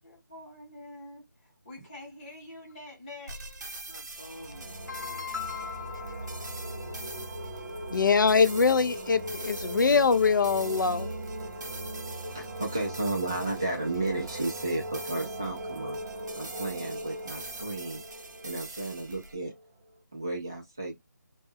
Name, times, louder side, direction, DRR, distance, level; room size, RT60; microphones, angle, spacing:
voice 1, 0.0-3.4, left 1 dB, 20° left, 0.8 m, -46 dB
sound 1, 3.3-19.3, right 2 dB, 60° right, 0.7 m, -44 dB
voice 2, 3.9-7.0, left 7 dB, 60° left, 0.8 m, -41 dB
sound 2, 4.1-19.7, right 1 dB, 25° right, 0.7 m, -39 dB
voice 3, 7.9-11.1, left 5 dB, 75° left, 0.4 m, -23 dB
voice 4, 12.2-16.0 16.4-18.0 18.4-19.5 20.1-20.9, right 2 dB, 10° right, 0.3 m, -33 dB
2.1 x 2.1 x 3.3 m
figure-of-eight pair, 175°, 11 cm